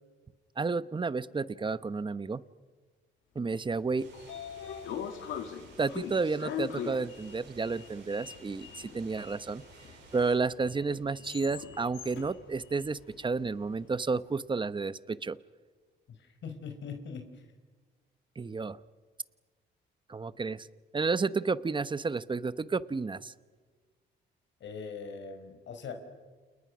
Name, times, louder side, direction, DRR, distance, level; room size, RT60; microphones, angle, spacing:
voice 1, 0.6-2.4 3.3-4.1 5.8-9.6 10.1-15.4 18.4-18.8 20.1-20.7 20.9-23.3, right 4 dB, 25° right, 15 dB, 1.0 m, -31 dB
Sliding door, 3.7-13.9, left 8 dB, 85° left, 2.8 m, -42 dB
sound 1, 4.0-10.4, right 5 dB, 70° right, 7.6 m, -55 dB
voice 2, 16.1-17.5 24.6-25.9, left 5 dB, 65° left, 6 dB, 4.8 m, -42 dB
30.0 x 29.0 x 6.2 m, 1.4 s
cardioid pair, 90°, 20 cm